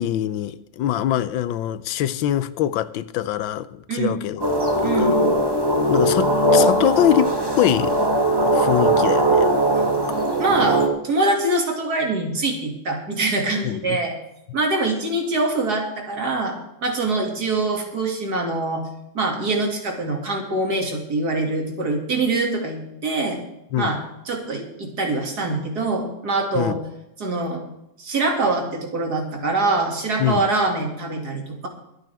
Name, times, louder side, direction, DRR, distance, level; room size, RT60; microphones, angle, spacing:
voice 1, 0.0-5.1 5.9-8.1 8.5-9.5 10.1-10.2 13.6-14.0 23.7-24.0 26.5-26.8 30.2-30.5, left 11 dB, 80° left, 1.4 m, -23 dB
sound 1, 4.4-10.9, right 1 dB, 15° right, 1.3 m, -19 dB
voice 2, 4.8-5.2 10.4-14.2 14.5-18.9 19.1-23.4 23.8-24.0 24.3-26.8 27.2-27.6 28.0-31.7, right 2 dB, 55° right, 2.9 m, -24 dB
24.0 x 9.0 x 3.5 m
omnidirectional pair, 2.1 m